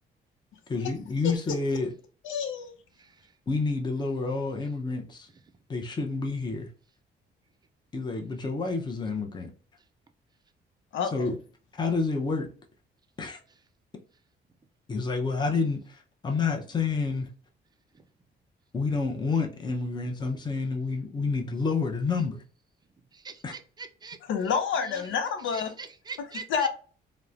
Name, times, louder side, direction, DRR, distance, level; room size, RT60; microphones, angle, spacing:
voice 1, 0.7-1.9 3.5-5.3 5.7-6.7 7.9-9.5 11.1-11.4 11.8-12.5 13.2-13.4 14.9-17.3 18.7-22.4 23.4-23.5, left 4 dB, 20° left, 0.6 m, -29 dB
voice 2, 2.2-2.7 10.9-11.3 24.3-25.7 26.5-26.7, left 6 dB, 80° left, 0.6 m, -28 dB
voice 3, 3.0-3.4 17.9-18.0 23.1-24.2 24.8-25.1 25.5-26.7, right 5 dB, 20° right, 0.4 m, -43 dB
3.0 x 2.1 x 2.4 m
cardioid pair, 90°, 20 cm